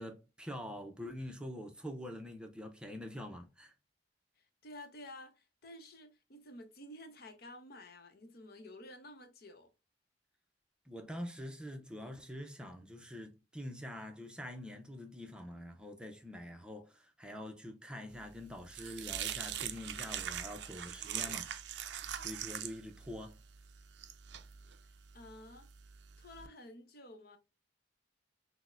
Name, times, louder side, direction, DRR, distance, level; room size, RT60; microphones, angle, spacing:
voice 1, 0.0-3.7 10.9-21.5 21.9-23.4, left 1 dB, 5° right, 0.5 m, -45 dB
voice 2, 4.4-9.7 25.1-25.7 26.2-27.4, left 1 dB, 60° left, 0.8 m, -52 dB
sound 1, 18.2-26.5, right 10 dB, 70° right, 0.4 m, -42 dB
6.1 x 2.1 x 2.4 m
head